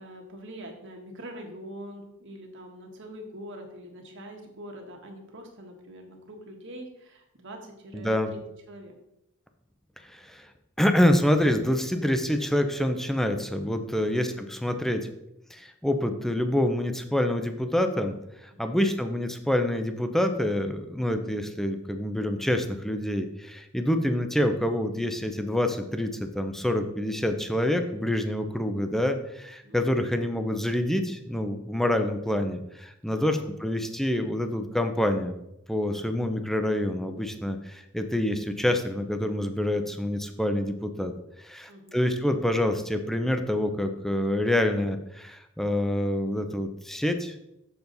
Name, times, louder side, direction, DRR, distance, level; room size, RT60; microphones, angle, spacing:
voice 1, 0.0-8.4 8.7-8.9 18.5-18.8 29.6-29.8 33.1-33.4 35.9-36.2 41.7-42.1, equal, 60° right, 2 dB, 1.5 m, -44 dB
voice 2, 7.9-8.3 10.1-10.5 10.8-15.0 15.5-18.1 18.6-35.4 35.7-41.1 41.4-47.3, left 1 dB, ahead, 7 dB, 0.6 m, -27 dB
7.0 x 7.0 x 4.0 m, 0.84 s
head